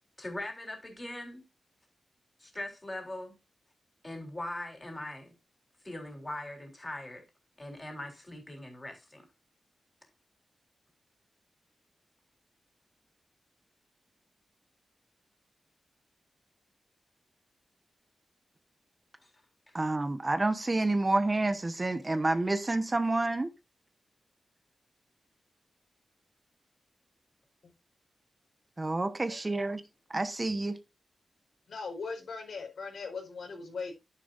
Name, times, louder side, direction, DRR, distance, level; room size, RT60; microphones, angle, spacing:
voice 1, 0.2-1.4 2.4-3.4 4.0-5.3 5.8-7.2 7.6-9.2 19.2-19.3 19.7-19.8 21.1-21.2, left 1 dB, 20° left, 3.6 m, -41 dB
voice 2, 19.7-23.5 28.8-29.8 30.1-30.8, right 2 dB, 25° right, 0.9 m, -29 dB
voice 3, 31.7-33.9, left 4 dB, 80° left, 4.8 m, -39 dB
11.0 x 10.0 x 2.5 m
wide cardioid pair, 130°, 0 cm